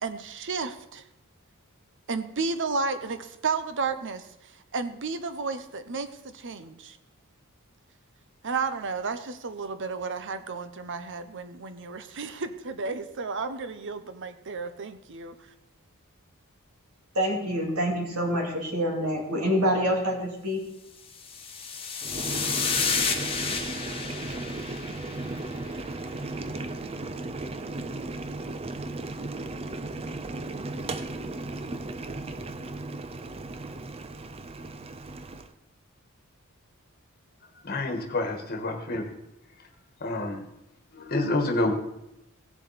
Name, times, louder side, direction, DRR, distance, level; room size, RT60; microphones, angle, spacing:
voice 1, 0.0-1.0 2.1-7.0 8.4-15.5, right 4 dB, 55° right, 11 dB, 0.8 m, -32 dB
voice 2, 17.1-20.7, equal, 80° right, -1 dB, 2.7 m, -26 dB
sound 1, 21.1-25.6, left 5 dB, 25° left, 1.3 m, -31 dB
Boiling, 22.0-35.5, right 2 dB, 25° right, 0.5 m, -36 dB
voice 3, 37.6-39.1 40.0-40.5 40.9-41.7, left 2 dB, 45° left, 4 dB, 1.5 m, -28 dB
16.5 x 7.2 x 4.2 m, 0.86 s
head